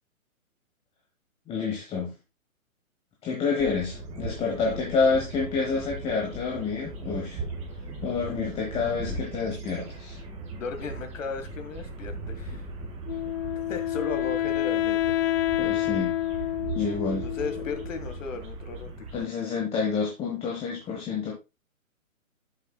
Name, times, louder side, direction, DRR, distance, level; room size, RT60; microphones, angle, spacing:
voice 1, 1.5-2.1 3.2-7.4 8.0-10.2 15.6-16.2 16.7-17.3 19.1-21.3, left 5 dB, 15° left, -1 dB, 1.3 m, -28 dB
sound 1, 3.6-19.3, right 2 dB, 15° right, 1.7 m, -38 dB
voice 2, 10.6-12.7 13.7-15.1 17.1-19.1, left 5 dB, 65° left, 7 dB, 1.9 m, -36 dB
Wind instrument woodwind instrument, 13.1-18.1, left 13 dB, 45° left, 0.5 m, -28 dB
11.5 x 7.1 x 2.3 m, 0.25 s
hypercardioid pair, 140°, 42 cm